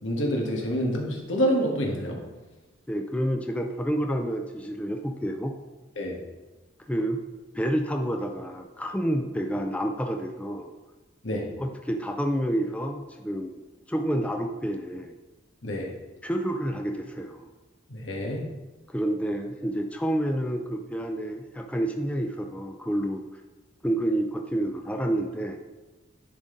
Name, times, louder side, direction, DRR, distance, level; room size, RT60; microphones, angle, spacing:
voice 1, 0.0-2.2 6.0-6.2 11.2-11.5 15.6-15.9 17.9-18.4, equal, 85° left, 0 dB, 1.4 m, -27 dB
voice 2, 2.9-5.5 6.9-7.2 7.5-10.7 11.6-13.5 13.9-15.1 16.2-17.5 18.9-23.2 23.8-25.6, right 1 dB, 5° left, 4 dB, 0.4 m, -29 dB
10.0 x 3.8 x 3.8 m, 1.2 s
head